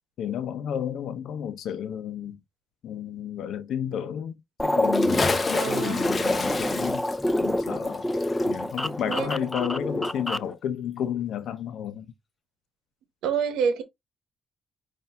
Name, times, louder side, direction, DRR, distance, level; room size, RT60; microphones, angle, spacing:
voice 1, 0.2-2.4 2.8-7.1 7.4-8.1 8.5-12.1, left 9 dB, 75° left, 0.7 m, -32 dB
sound 1, 4.6-10.5, left 1 dB, 5° left, 0.3 m, -27 dB
Bathtub (filling or washing) / Splash splatter, 4.8-9.8 10.0-10.1, left 4 dB, 30° left, 0.7 m, -32 dB
voice 2, 5.5-6.1 9.1-9.4 13.2-13.8, right 7 dB, 90° right, 0.9 m, -28 dB
5.6 x 2.6 x 3.5 m
cardioid pair, 90°, 0 cm